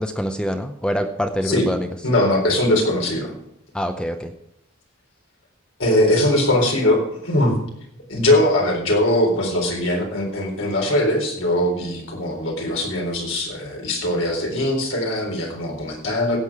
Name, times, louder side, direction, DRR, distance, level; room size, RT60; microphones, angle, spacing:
voice 1, 0.0-1.9 3.7-4.3, equal, 5° left, 7 dB, 0.6 m, -25 dB
voice 2, 2.0-3.3 5.8-7.6 8.1-16.4, left 1 dB, 70° left, 1 dB, 4.0 m, -21 dB
16.5 x 8.2 x 4.8 m, 0.78 s
head